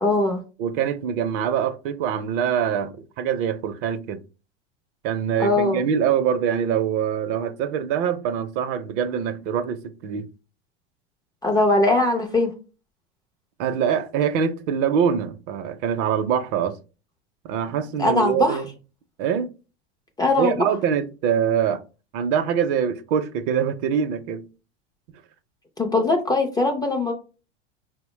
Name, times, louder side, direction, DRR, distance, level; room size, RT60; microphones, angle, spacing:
voice 1, 0.0-0.4 5.4-5.8 11.4-12.5 18.0-18.6 20.2-20.7 25.8-27.1, left 2 dB, 10° left, 0.3 m, -21 dB
voice 2, 0.6-4.2 5.0-10.3 13.6-16.8 17.4-18.7 19.2-19.5 20.4-21.8 22.1-24.5, right 8 dB, 50° right, 0.5 m, -24 dB
4.3 x 2.1 x 3.0 m
hypercardioid pair, 110°, 34 cm